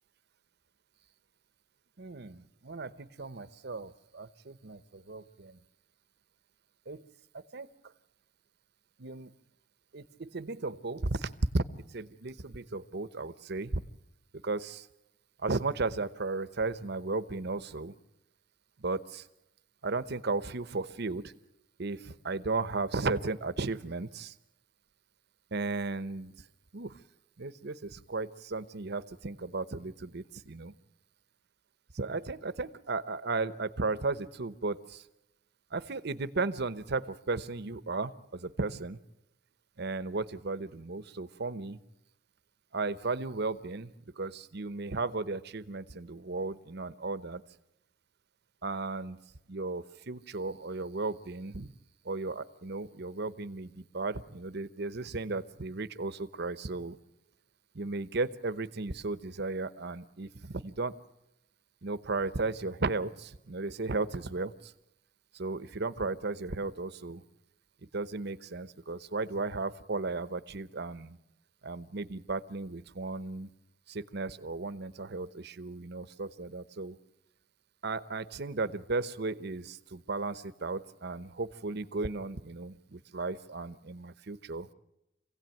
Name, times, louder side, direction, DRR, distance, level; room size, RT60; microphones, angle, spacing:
voice 1, 2.0-5.6 6.9-7.1 7.3-7.9 9.0-9.3 9.9-11.6 11.9-13.8 14.4-14.9 15.4-17.9 18.8-19.3 19.8-21.3 21.8-24.4 25.5-26.5 26.7-27.0 27.4-30.7 31.9-35.1 35.7-39.0 39.8-41.8 42.7-47.4 48.6-49.2 49.5-51.7 52.0-57.0 57.7-61.0 61.8-64.7 65.3-67.2 67.8-71.2 71.6-73.5 73.9-77.0 77.8-84.7, right 3 dB, 55° right, 14 dB, 0.9 m, -35 dB
26.0 x 16.5 x 9.1 m, 0.89 s
head